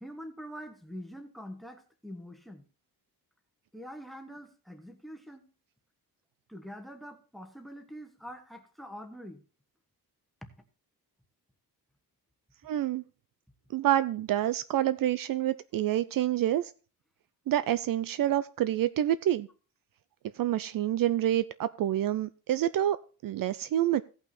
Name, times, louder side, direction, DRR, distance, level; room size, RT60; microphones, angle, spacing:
voice 1, 0.0-2.6 3.7-5.5 6.5-9.4 10.4-10.5, equal, ahead, 7 dB, 1.2 m, -45 dB
voice 2, 12.6-13.0 13.7-16.7 17.5-19.5 20.4-23.0 23.2-24.0, right 12 dB, 60° right, 15 dB, 0.5 m, -27 dB
16.5 x 5.8 x 4.2 m, 0.35 s
cardioid pair, 145°, 39 cm